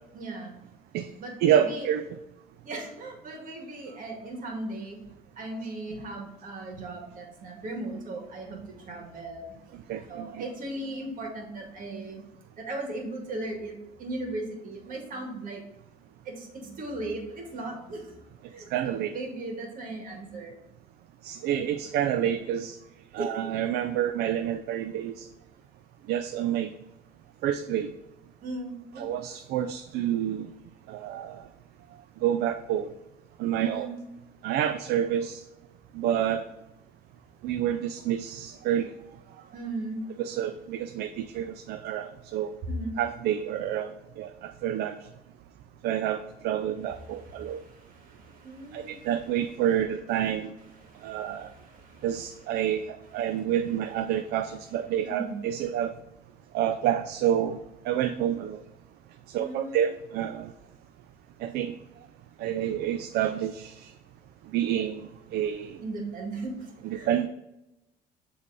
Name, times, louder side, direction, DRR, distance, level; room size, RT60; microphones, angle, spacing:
voice 1, 0.1-0.5 1.2-1.9 2.6-5.0 5.4-9.5 9.9-12.2 12.6-15.6 16.3-18.2 18.5-20.6 21.5-21.7 23.2-23.3 28.4-29.1 33.6-33.9 39.5-40.0 42.6-43.0 47.1-49.2 50.8-52.1 53.2-53.4 55.0-55.3 59.4-59.8 65.8-67.1, right 2 dB, 55° right, 1 dB, 1.9 m, -37 dB
voice 2, 1.4-2.1 9.9-10.3 18.7-19.1 21.2-22.8 23.1-25.3 26.1-26.7 27.4-27.9 29.0-30.5 30.9-31.4 32.2-32.9 33.4-33.9 34.4-35.4 35.9-36.4 37.4-38.9 40.2-42.5 43.0-43.9 44.2-44.9 45.8-47.6 48.7-50.5 51.0-51.5 52.0-55.9 56.5-57.6 57.9-58.6 59.3-60.5 61.4-61.7 62.4-63.9 64.5-65.0 65.3-65.8 66.8-67.3, right 10 dB, 75° right, 9 dB, 0.4 m, -28 dB
7.3 x 3.4 x 4.0 m, 0.92 s
cardioid pair, 110°, 17 cm